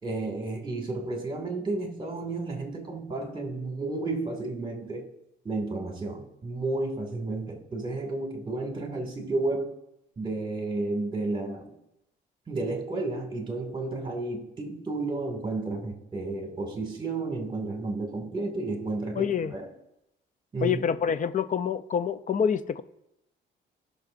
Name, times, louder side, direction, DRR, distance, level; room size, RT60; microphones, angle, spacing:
voice 1, 0.0-5.1 5.4-9.8 10.2-11.7 12.5-19.7 20.5-20.8, right 2 dB, 25° right, 2 dB, 2.2 m, -32 dB
voice 2, 19.2-19.5 20.6-22.8, left 7 dB, 40° left, 14 dB, 0.5 m, -26 dB
18.5 x 6.2 x 2.6 m, 0.86 s
cardioid pair, 90°, 20 cm